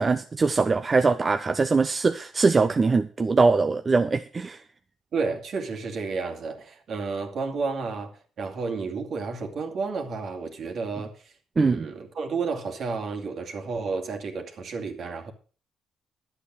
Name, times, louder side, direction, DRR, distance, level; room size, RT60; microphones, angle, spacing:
voice 1, 0.0-4.6 11.6-11.9, right 4 dB, 30° right, 0.7 m, -22 dB
voice 2, 5.1-15.3, right 4 dB, 60° right, 2.4 m, -31 dB
11.5 x 8.1 x 6.3 m
cardioid pair, 90°, 0 cm